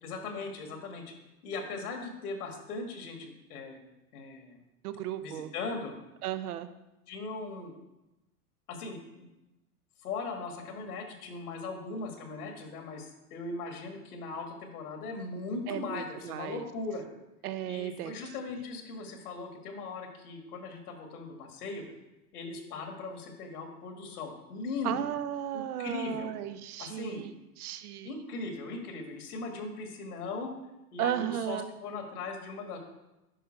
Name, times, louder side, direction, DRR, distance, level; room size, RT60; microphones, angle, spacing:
voice 1, 0.0-1.1 1.4-3.8 4.1-4.6 5.2-5.9 7.1-7.7 8.7-9.3 10.0-17.0 17.7-21.8 22.3-25.1 25.5-26.3 26.8-27.2 28.0-30.5 30.9-32.8, left 3 dB, 70° left, 4 dB, 2.0 m, -39 dB
voice 2, 4.8-5.5 6.2-6.7 15.7-16.7 17.4-18.1 24.8-28.1 31.0-31.7, right 11 dB, 70° right, 11 dB, 0.9 m, -35 dB
10.0 x 5.5 x 4.4 m, 0.97 s
hypercardioid pair, 110°, 46 cm